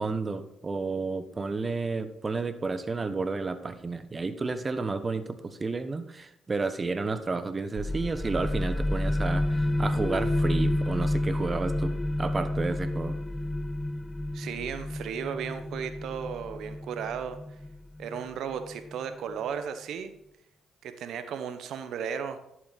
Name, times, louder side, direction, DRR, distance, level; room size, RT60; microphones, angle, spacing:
voice 1, 0.0-13.2, right 3 dB, 35° right, 11 dB, 1.1 m, -31 dB
sound 1, 7.8-19.1, left 1 dB, 15° left, 1.1 m, -30 dB
voice 2, 14.3-17.4 18.0-20.1 20.8-22.4, right 7 dB, 70° right, 9 dB, 1.1 m, -35 dB
11.5 x 7.9 x 4.2 m, 0.81 s
hypercardioid pair, 45°, 0 cm